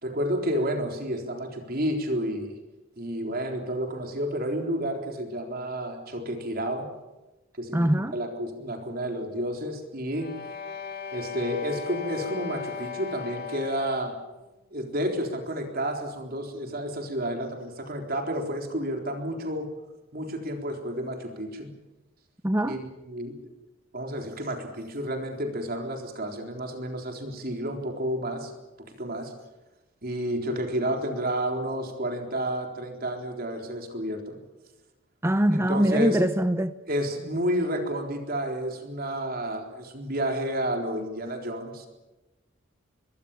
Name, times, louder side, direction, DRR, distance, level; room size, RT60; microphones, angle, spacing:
voice 1, 0.0-2.6 3.0-6.9 7.6-10.3 11.1-14.1 14.7-19.7 20.1-21.7 22.6-23.4 23.9-28.5 29.0-29.3 30.0-34.4 35.5-36.2 36.9-41.9, equal, 50° right, 3 dB, 4.0 m, -30 dB
voice 2, 7.7-8.1 22.4-22.8 35.2-36.7, right 1 dB, 15° right, 12 dB, 0.7 m, -23 dB
sound 1, 10.1-14.3, left 6 dB, 50° left, 2.6 m, -37 dB
24.5 x 23.0 x 7.2 m, 1.1 s
head